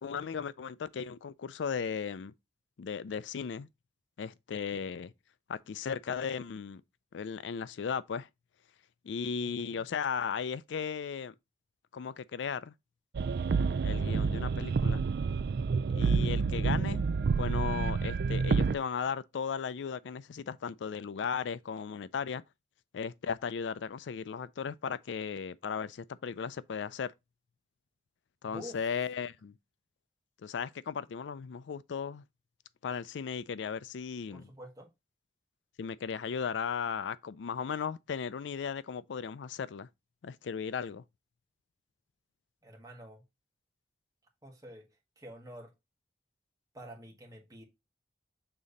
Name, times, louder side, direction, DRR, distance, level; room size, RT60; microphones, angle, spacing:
voice 1, 0.0-2.3 2.8-3.7 4.2-5.1 5.5-6.8 7.1-8.3 9.0-11.3 11.9-12.7 13.8-15.0 16.0-17.0 17.4-22.4 22.9-27.1 28.4-29.5 30.4-32.2 32.8-34.5 35.8-39.9 40.2-41.0, left 6 dB, 90° left, 0.4 m, -36 dB
voice 2, 9.4-9.8 28.4-28.8 34.3-34.9 42.6-43.2 44.4-44.9 45.2-45.7 46.7-47.6, equal, 20° right, 1.8 m, -48 dB
sound 1, 13.1-18.8, right 5 dB, 60° right, 0.4 m, -29 dB
6.9 x 3.7 x 4.1 m
head